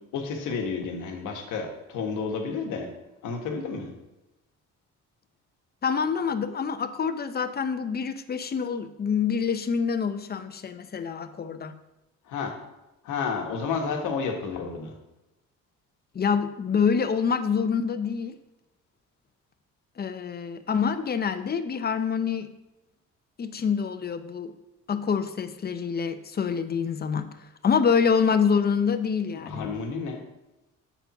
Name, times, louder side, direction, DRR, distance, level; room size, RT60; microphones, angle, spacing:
voice 1, 0.0-2.9 3.2-3.9 12.2-12.5 13.0-14.9 29.3-30.2, left 5 dB, 85° left, 2 dB, 1.4 m, -31 dB
voice 2, 5.8-11.7 16.1-18.4 20.0-22.5 23.4-24.5 24.9-27.3 27.6-29.7, left 6 dB, 35° left, 10 dB, 0.6 m, -26 dB
6.8 x 4.4 x 5.9 m, 0.96 s
cardioid pair, 90°, 30 cm